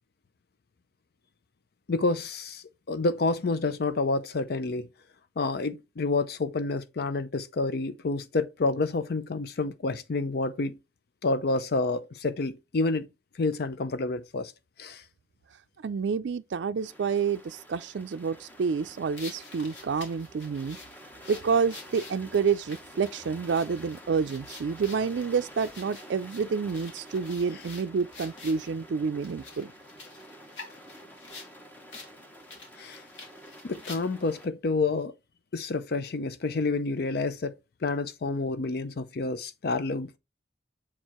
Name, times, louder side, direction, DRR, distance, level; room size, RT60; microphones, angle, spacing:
voice 1, 1.9-4.9 5.4-10.8 11.2-13.1 13.4-14.5 14.8-15.0 32.8-33.0 33.6-35.1 35.5-37.5 37.8-40.2, left 3 dB, 55° left, 0.5 m, -29 dB
voice 2, 15.8-20.8 21.3-29.7, right 5 dB, 70° right, 0.4 m, -28 dB
sound 1, 16.8-34.5, equal, 10° left, 1.1 m, -49 dB
sound 2, 19.2-28.7 29.2-31.5 31.9-32.1 32.4-34.3, left 3 dB, 80° left, 2.4 m, -47 dB
7.3 x 4.5 x 3.0 m
head